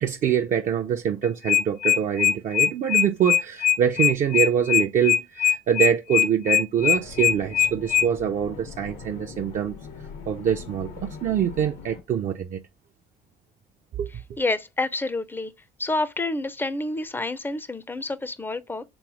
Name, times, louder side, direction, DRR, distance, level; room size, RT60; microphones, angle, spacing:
voice 1, 0.0-9.8 10.3-12.6 13.9-14.1, right 8 dB, 50° right, 0.5 m, -24 dB
sound 1, 1.2-8.1, left 9 dB, 65° left, 0.8 m, -21 dB
sound 2, 6.8-12.0, left 5 dB, 85° left, 1.1 m, -41 dB
voice 2, 14.4-15.5 15.8-18.8, left 2 dB, 10° left, 0.4 m, -28 dB
3.5 x 3.0 x 4.7 m
cardioid pair, 110°, 17 cm